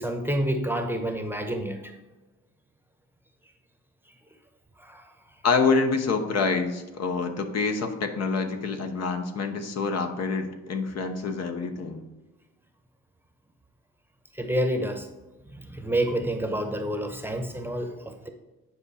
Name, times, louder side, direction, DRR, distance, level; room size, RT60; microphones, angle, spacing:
voice 1, 0.0-1.9 4.8-5.1 14.3-15.1 15.4-18.3, right 1 dB, 5° right, 6 dB, 0.9 m, -29 dB
voice 2, 5.4-12.0, left 4 dB, 60° left, 6 dB, 1.0 m, -26 dB
9.7 x 4.9 x 4.2 m, 1.1 s
cardioid pair, 90°, 30 cm